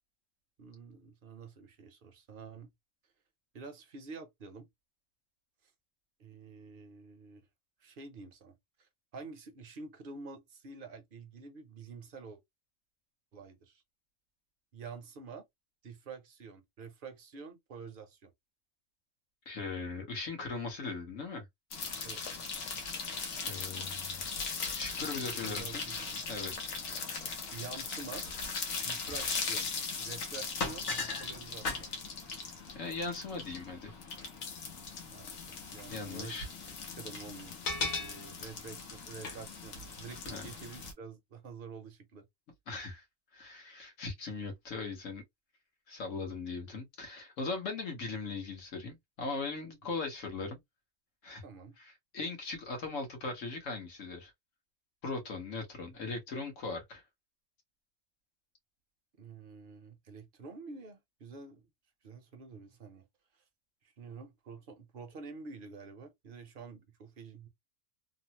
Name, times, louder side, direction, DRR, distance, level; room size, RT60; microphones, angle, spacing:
voice 1, 0.6-2.7 3.5-4.7 6.2-7.4 7.8-12.4 13.3-13.8 14.7-15.4 15.8-18.3 22.0-22.2 25.3-26.2 26.7-27.0 27.5-28.2 28.8-29.7 30.0-30.9 31.2-31.9 35.1-36.4 37.0-42.3 51.4-51.8 59.2-61.7 62.0-63.1 64.0-67.5, right 4 dB, 50° right, 0.8 m, -48 dB
voice 2, 19.5-21.4 23.4-24.2 24.7-25.8 26.3-26.5 32.7-34.0 35.9-36.5 40.3-40.5 42.7-43.0 43.3-45.2 45.9-50.6 51.2-51.4 51.8-54.3 55.0-57.0, left 3 dB, 70° left, 1.4 m, -39 dB
sound 1, 21.7-40.9, left 4 dB, 90° left, 1.3 m, -38 dB
3.2 x 2.0 x 2.8 m
omnidirectional pair, 1.4 m